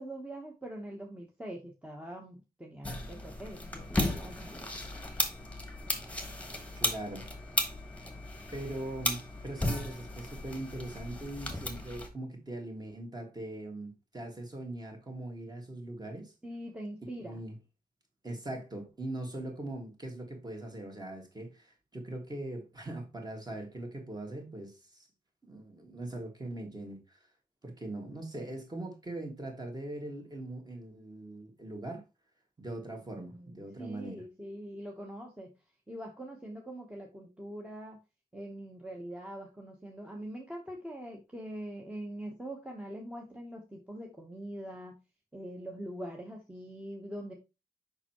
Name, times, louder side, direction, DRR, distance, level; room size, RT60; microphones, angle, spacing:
voice 1, 0.0-4.7 16.4-17.4 33.2-35.5 35.9-38.0 38.3-45.0 45.3-47.3, right 1 dB, 5° right, 1.0 m, -43 dB
sound 1, 2.8-12.1, left 1 dB, 10° left, 1.3 m, -35 dB
voice 2, 6.7-7.3 8.5-16.3 17.2-17.6 18.2-25.1 25.4-27.2 27.6-32.0 32.6-34.2, right 1 dB, 25° right, 1.9 m, -41 dB
6.9 x 5.5 x 3.0 m
wide cardioid pair, 175°, 16 cm